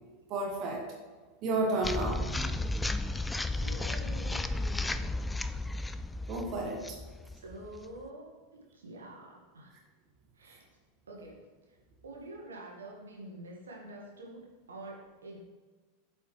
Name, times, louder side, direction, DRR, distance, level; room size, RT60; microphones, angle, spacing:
voice 1, 0.3-0.9 1.4-3.1 6.3-7.0, right 2 dB, 45° right, 0 dB, 1.2 m, -33 dB
sound 1, 1.8-8.0, left 2 dB, 10° left, 0.3 m, -34 dB
voice 2, 3.6-5.1 7.3-8.3 8.7-9.7 10.3-10.6 11.1-11.8 12.0-15.4, right 2 dB, 75° right, -2 dB, 1.7 m, -47 dB
8.0 x 5.4 x 3.3 m, 1.4 s
figure-of-eight pair, 85°, 0 cm